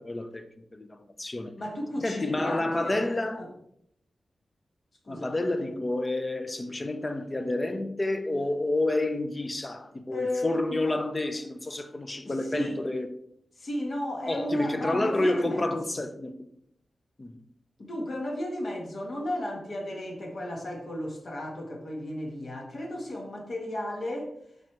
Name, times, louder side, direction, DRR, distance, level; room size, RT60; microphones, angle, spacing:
voice 1, 0.0-1.6 2.0-3.5 5.1-13.1 14.3-16.5 17.2-17.4, left 2 dB, 25° left, 0.5 m, -29 dB
voice 2, 1.6-3.0 3.4-3.5 5.0-5.3 10.1-11.0 12.1-12.8 13.5-16.0 17.8-24.4, left 1 dB, 45° left, 1.5 m, -34 dB
7.8 x 5.1 x 3.3 m
wide cardioid pair, 145°, 0 cm